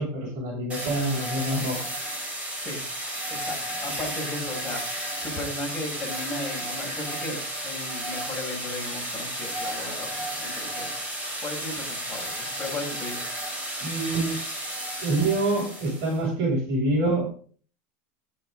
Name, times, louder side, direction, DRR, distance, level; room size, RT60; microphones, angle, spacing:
voice 1, 0.0-1.8 13.8-14.4 15.0-17.3, right 2 dB, 55° right, -2 dB, 7.7 m, -26 dB
sound 1, 0.7-16.2, right 1 dB, 20° right, 5.6 m, -33 dB
voice 2, 3.3-10.9 11.4-13.2, left 2 dB, 15° left, -3 dB, 6.8 m, -36 dB
11.5 x 11.0 x 4.0 m, 0.42 s
supercardioid pair, 135°, 7 cm